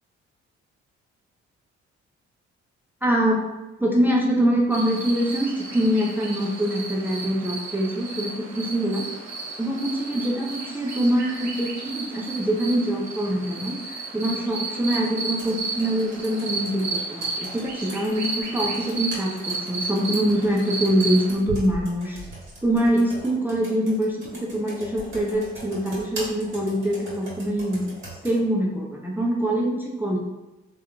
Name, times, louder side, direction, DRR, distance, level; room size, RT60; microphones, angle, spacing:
voice 1, 3.0-3.4 3.8-9.1 9.6-22.2 22.6-30.2, right 1 dB, 5° right, -2 dB, 0.5 m, -24 dB
sound 1, 4.7-21.3, right 3 dB, 60° right, 0.7 m, -33 dB
Computer keyboard, 14.9-28.4, right 1 dB, 40° right, 1.4 m, -40 dB
2.8 x 2.4 x 2.3 m, 1.0 s
hypercardioid pair, 45°, 31 cm